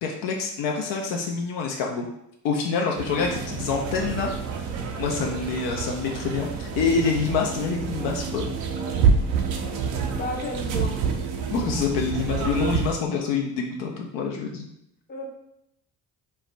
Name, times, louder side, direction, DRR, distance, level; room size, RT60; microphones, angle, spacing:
voice 1, 0.0-2.1 2.4-4.3 5.0-8.6 11.5-14.7, left 5 dB, 60° left, 0 dB, 0.5 m, -26 dB
sound 1, 3.0-12.9, right 6 dB, 60° right, 0.5 m, -28 dB
voice 2, 10.1-11.0 15.1-15.3, left 2 dB, 20° left, 0 dB, 0.6 m, -32 dB
2.3 x 2.0 x 3.2 m, 0.77 s
figure-of-eight pair, 45°, 49 cm